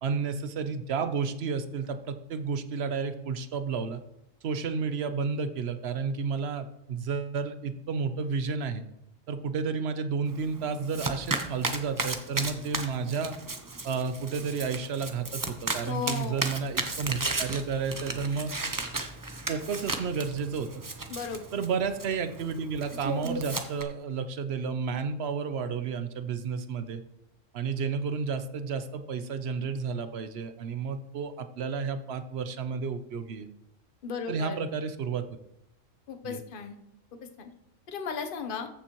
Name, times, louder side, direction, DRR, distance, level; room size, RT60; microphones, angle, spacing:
voice 1, 0.0-4.0 4.4-8.8 9.3-13.4 13.8-18.5 19.5-20.8 21.5-27.0 27.5-33.5 34.3-35.2 36.2-36.4, right 5 dB, 60° right, 10 dB, 0.9 m, -31 dB
Domestic sounds home sounds, 10.3-23.8, right 3 dB, 20° right, 0.5 m, -35 dB
voice 2, 15.9-16.5 21.1-21.5 34.0-34.6 36.1-36.8 37.4-37.5 37.9-38.7, left 6 dB, 50° left, 6 dB, 0.9 m, -35 dB
14.5 x 7.0 x 3.0 m, 0.81 s
omnidirectional pair, 1.3 m